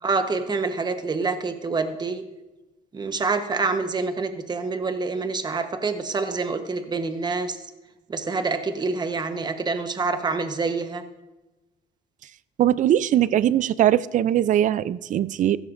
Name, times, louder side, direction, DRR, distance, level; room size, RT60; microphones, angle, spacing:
voice 1, 0.0-2.2 2.9-7.6 8.1-11.0, right 4 dB, 25° right, 1.1 m, -26 dB
voice 2, 12.6-15.6, right 11 dB, 50° right, 0.5 m, -20 dB
15.0 x 13.5 x 2.6 m
cardioid pair, 110°, 17 cm